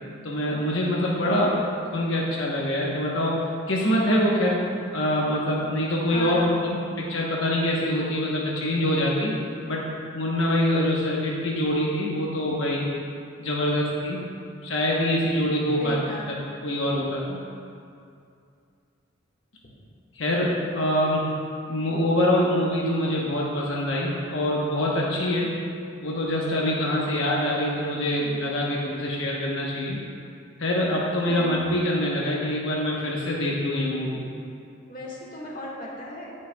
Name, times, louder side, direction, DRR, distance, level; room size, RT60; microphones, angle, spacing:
voice 1, 0.2-1.5 1.9-3.4 3.7-4.6 4.9-9.3 9.6-9.8 10.1-12.9 13.4-14.2 14.6-16.0 16.6-17.4 20.2-21.2 21.7-25.5 26.0-30.0 30.6-34.2, left 1 dB, 75° left, -4 dB, 1.0 m, -24 dB
voice 2, 1.2-1.8 6.1-6.5 15.8-16.3 19.6-19.7 31.2-31.6 34.9-36.3, left 1 dB, 45° left, -4 dB, 1.6 m, -36 dB
17.5 x 6.5 x 2.3 m, 2.5 s
head